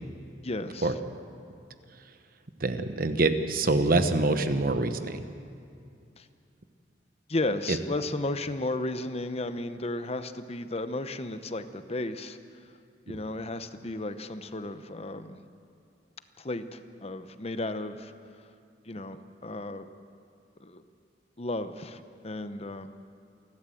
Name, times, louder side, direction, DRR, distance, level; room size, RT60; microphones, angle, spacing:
voice 1, 0.4-1.0 6.2-6.3 7.3-12.4 13.1-15.4 16.4-18.1 18.8-19.9 20.6-20.8 21.4-22.9, left 2 dB, 35° left, 10 dB, 0.8 m, -34 dB
voice 2, 2.6-5.2 7.7-7.8, right 2 dB, 55° right, 9 dB, 1.1 m, -25 dB
29.0 x 12.0 x 7.8 m, 2.4 s
head